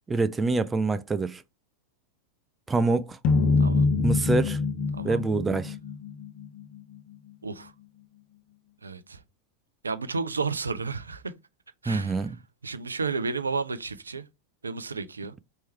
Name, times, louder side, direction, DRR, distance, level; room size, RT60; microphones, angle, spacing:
voice 1, 0.1-1.4 2.7-3.2 4.0-4.6 5.0-5.7 11.9-12.3, right 3 dB, 15° right, 0.3 m, -25 dB
sound 1, 3.2-6.5, left 4 dB, 40° left, 0.7 m, -24 dB
voice 2, 8.8-9.2 9.8-11.3 11.8-12.3 12.6-14.3 14.6-15.3, right 4 dB, 75° right, 0.4 m, -32 dB
4.4 x 2.9 x 3.2 m
figure-of-eight pair, 90°, 0 cm